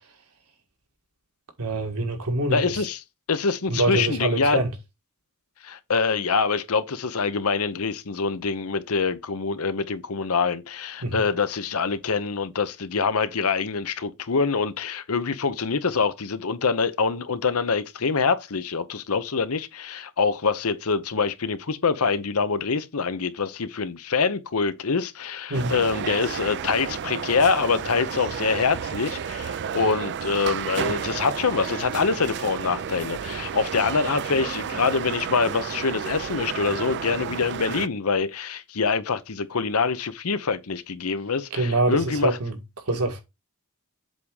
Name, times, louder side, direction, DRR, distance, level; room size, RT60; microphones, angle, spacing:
voice 1, 1.6-2.8 3.7-4.7 11.0-11.2 25.5-25.7 41.5-42.6 42.9-43.2, right 2 dB, 80° right, 1.9 m, -25 dB
voice 2, 2.5-3.0 3.3-4.6 5.6-42.4, left 5 dB, 75° left, 0.8 m, -25 dB
sound 1, 25.5-37.9, right 7 dB, 50° right, 0.4 m, -32 dB
7.6 x 3.6 x 4.8 m
head